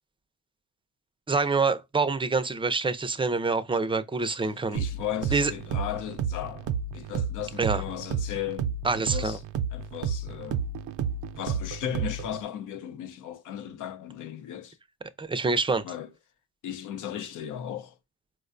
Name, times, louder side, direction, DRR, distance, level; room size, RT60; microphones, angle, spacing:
voice 1, 1.3-4.8 5.3-5.5 7.6-7.8 8.8-9.4 15.2-15.8, right 4 dB, 15° right, 0.4 m, -26 dB
voice 2, 4.5-9.4 9.7-10.6 11.3-14.8 15.8-16.1 16.6-18.0, left 10 dB, 85° left, 0.7 m, -36 dB
sound 1, 4.8-12.4, right 6 dB, 80° right, 0.5 m, -31 dB
4.6 x 2.2 x 2.4 m
cardioid pair, 90°, 30 cm